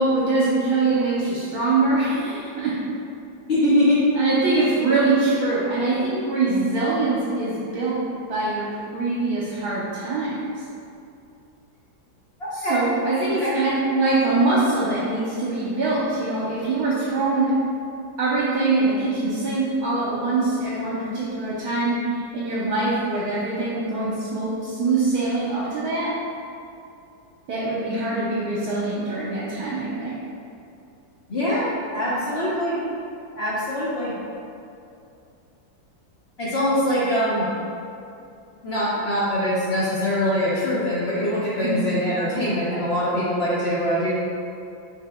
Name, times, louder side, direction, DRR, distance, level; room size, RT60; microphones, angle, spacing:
voice 1, 0.0-2.7 4.1-8.0 8.3-8.7 8.9-10.4 12.7-17.5 18.2-22.0 22.3-26.1 27.5-30.2 41.6-41.8, right 3 dB, 60° right, -7 dB, 1.1 m, -23 dB
voice 2, 3.5-4.0 12.6-12.8 13.4-13.5 31.3-32.8 33.4-34.1 36.4-37.5 38.6-44.1, left 1 dB, 70° left, -9 dB, 0.6 m, -23 dB
5.7 x 3.6 x 2.2 m, 2.6 s
omnidirectional pair, 2.1 m